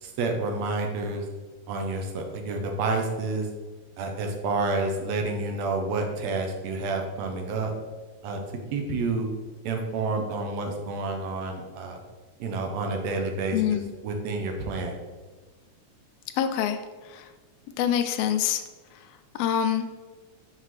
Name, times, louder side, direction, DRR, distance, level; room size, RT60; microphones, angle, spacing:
voice 1, 0.0-1.3 1.7-3.5 4.0-7.7 8.2-8.4 8.7-9.3 9.6-12.0 12.4-15.0, right 3 dB, 75° right, 3 dB, 1.8 m, -29 dB
voice 2, 13.5-13.9 16.4-16.8 17.1-17.2 17.8-18.6 19.4-19.9, left 9 dB, 80° left, 7 dB, 1.5 m, -25 dB
5.8 x 5.6 x 3.0 m, 1.3 s
omnidirectional pair, 3.5 m